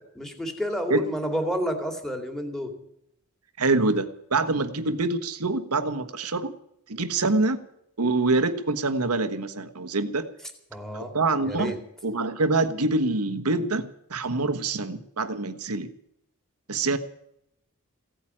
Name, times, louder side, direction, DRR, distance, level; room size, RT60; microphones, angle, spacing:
voice 1, 0.1-2.7 10.7-11.1 11.4-11.8, equal, ahead, 5 dB, 2.4 m, -29 dB
voice 2, 3.6-6.5 6.9-7.6 8.0-10.3 10.9-11.8 12.0-15.9 16.7-17.0, right 3 dB, 85° right, 10 dB, 1.3 m, -25 dB
16.5 x 9.0 x 8.9 m, 0.76 s
head